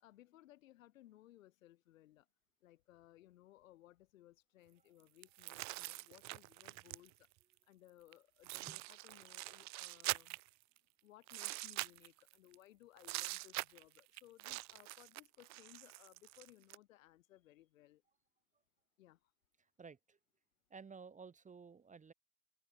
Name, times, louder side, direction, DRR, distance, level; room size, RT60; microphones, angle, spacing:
voice 1, 0.0-2.3 2.6-7.3 7.7-10.4 11.0-18.0 19.0-19.3, left 14 dB, 75° left, 2.0 m, -63 dB
sound 1, 5.2-7.3 8.1-8.2 8.4-10.8 11.3-12.6 13.0-16.8, right 21 dB, 45° right, 0.6 m, -44 dB
voice 2, 19.8-20.2 20.7-22.1, right 5 dB, 20° right, 1.1 m, -54 dB
open air
figure-of-eight pair, 70°, 40 cm